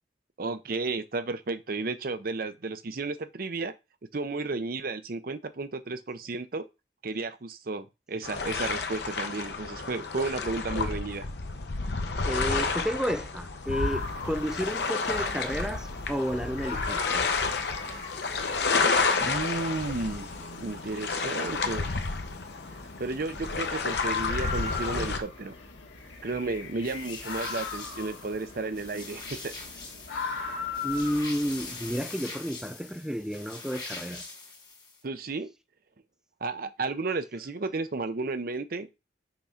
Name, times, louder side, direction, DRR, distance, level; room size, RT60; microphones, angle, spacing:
voice 1, 0.4-3.7 4.1-6.6 7.0-11.3 19.2-22.0 23.0-25.5 26.2-29.5 35.0-35.5 36.4-38.9, right 3 dB, 50° right, 0.6 m, -33 dB
sound 1, 8.2-25.2, left 4 dB, 65° left, 0.9 m, -31 dB
voice 2, 12.2-17.3 30.8-34.3, equal, 5° right, 0.4 m, -31 dB
sound 2, 13.6-32.0, left 5 dB, 90° left, 1.6 m, -39 dB
sound 3, 26.8-35.0, left 3 dB, 25° left, 1.9 m, -43 dB
5.8 x 3.7 x 5.6 m
head